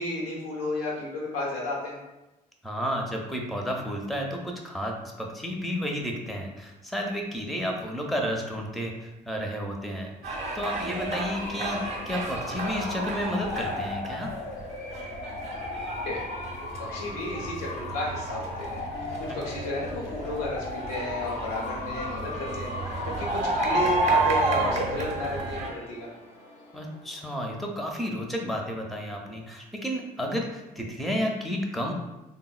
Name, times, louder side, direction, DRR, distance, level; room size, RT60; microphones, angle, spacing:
voice 1, 0.0-2.0 16.1-16.3 16.9-26.1, left 1 dB, 80° left, -3 dB, 0.7 m, -33 dB
voice 2, 2.6-14.3 26.7-31.9, equal, ahead, 1 dB, 0.6 m, -32 dB
sound 1, 10.2-25.7, right 2 dB, 35° right, 0.7 m, -32 dB
Bark / Motor vehicle (road) / Siren, 11.3-27.5, left 3 dB, 45° left, 0.5 m, -37 dB
sound 2, 18.9-26.8, equal, 85° right, 0.6 m, -46 dB
3.7 x 2.0 x 2.4 m, 0.99 s
hypercardioid pair, 45°, 19 cm